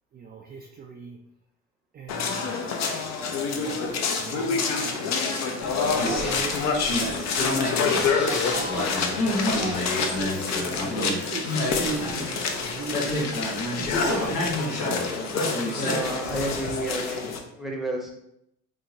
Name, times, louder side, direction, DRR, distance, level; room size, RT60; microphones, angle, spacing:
voice 1, 0.1-1.2 1.9-2.7 3.2-5.1 5.9-6.9 7.9-9.0 9.5-13.4 13.8-14.9, right 6 dB, 25° right, 2 dB, 0.4 m, -38 dB
sound 1, 2.1-17.4, left 5 dB, 50° left, 0.6 m, -28 dB
sound 2, 5.6-16.0, left 1 dB, 75° left, 1.1 m, -29 dB
voice 2, 15.6-18.1, right 1 dB, ahead, 0 dB, 0.8 m, -31 dB
3.7 x 2.8 x 2.7 m, 0.79 s
hypercardioid pair, 70°, 36 cm